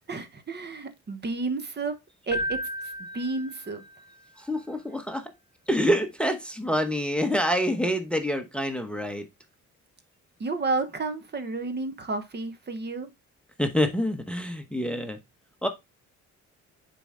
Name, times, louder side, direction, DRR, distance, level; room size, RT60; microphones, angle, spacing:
voice 1, 0.1-2.0 2.3-2.6 3.0-3.8 10.4-13.1, right 3 dB, 35° right, 1.0 m, -31 dB
Keyboard (musical), 2.3-4.1, left 1 dB, 35° left, 0.7 m, -34 dB
voice 2, 4.4-5.3 5.7-9.3 13.6-15.2 15.6-15.7, equal, 5° left, 0.9 m, -26 dB
6.8 x 4.3 x 3.6 m
cardioid pair, 90°, 30 cm